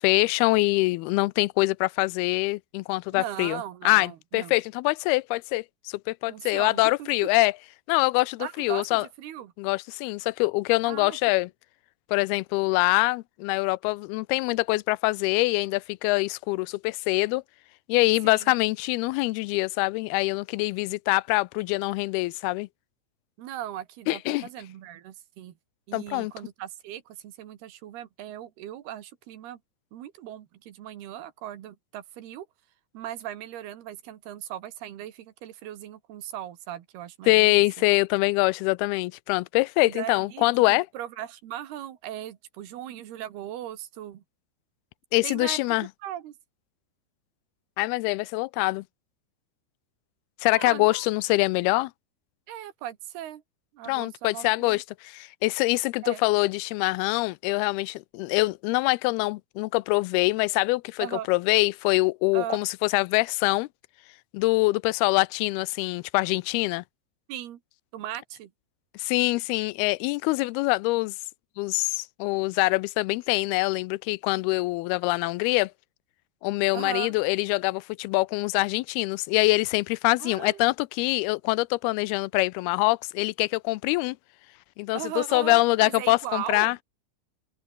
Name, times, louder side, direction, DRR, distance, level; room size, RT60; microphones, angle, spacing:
voice 1, 0.0-3.6 3.9-7.5 7.9-9.1 9.6-11.5 12.1-17.4 17.9-22.7 24.1-24.5 25.9-26.3 37.3-40.9 45.1-45.9 47.8-48.8 50.4-51.9 53.9-63.7 64.3-66.8 68.9-71.1 71.6-75.7 76.4-84.2 84.8-86.8, left 22 dB, 85° left, 2.5 m, -24 dB
voice 2, 3.1-4.6 6.3-7.1 8.4-9.5 10.8-11.2 18.2-18.5 23.4-25.6 25.9-29.6 29.9-32.5 32.9-37.6 39.8-44.2 45.2-45.6 46.0-46.4 50.5-51.1 52.5-53.4 53.7-54.8 56.0-56.2 61.0-61.3 62.3-62.6 67.3-67.6 67.9-68.5 76.7-77.1 80.2-80.6 84.9-86.8, right 12 dB, 85° right, 3.7 m, -38 dB
omnidirectional pair, 4.5 m